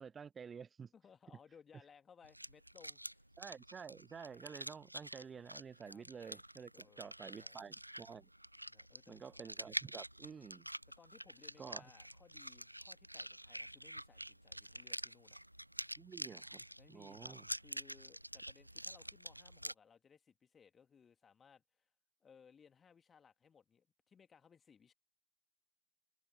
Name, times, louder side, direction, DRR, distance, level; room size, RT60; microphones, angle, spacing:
voice 1, 0.0-0.9 3.4-8.3 9.1-10.7 11.6-11.8 16.0-17.5, right 6 dB, 20° right, 0.7 m, -51 dB
voice 2, 0.9-3.3 5.9-6.1 6.7-7.6 8.7-9.2 11.0-15.4 16.8-21.9 22.2-24.9, left 6 dB, 20° left, 2.4 m, -64 dB
sound 1, 2.2-19.7, right 1 dB, 90° right, 0.9 m, -48 dB
figure-of-eight pair, 90°, 0 cm